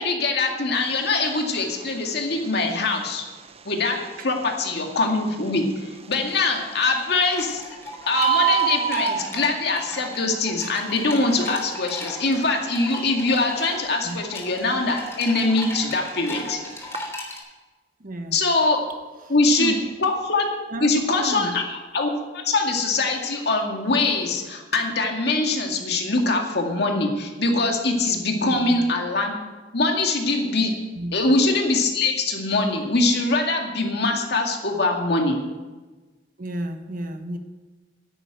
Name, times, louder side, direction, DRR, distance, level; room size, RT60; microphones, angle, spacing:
voice 1, 0.0-3.2 3.7-4.0 4.2-7.6 8.1-16.6 18.3-18.8 19.3-20.5 20.8-21.6 21.9-29.4 29.7-30.7 31.1-35.4, left 3 dB, 65° left, 2 dB, 2.2 m, -23 dB
Bird, 0.7-17.1, right 8 dB, 35° right, 0.6 m, -31 dB
sound 1, 5.9-17.4, left 1 dB, 15° left, 3.5 m, -37 dB
voice 2, 18.0-18.4 19.2-19.9 20.7-21.6 28.4-28.8 30.9-31.3 36.4-37.4, right 1 dB, 50° right, 7 dB, 1.2 m, -32 dB
11.0 x 8.5 x 9.0 m, 1.2 s
head